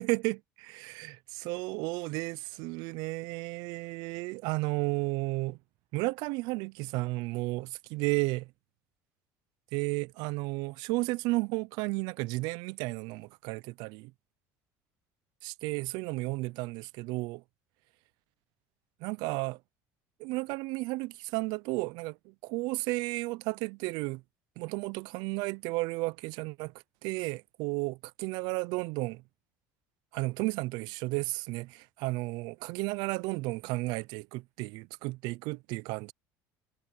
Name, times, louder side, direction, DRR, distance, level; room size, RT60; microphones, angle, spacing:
voice 1, 0.0-5.6 5.9-8.5 9.7-14.1 15.4-17.4 19.0-19.6 20.2-24.2 24.6-26.7 27.0-29.2 30.1-36.1, right 23 dB, 75° right, 0.5 m, -33 dB
supercardioid pair, 110°, 7 cm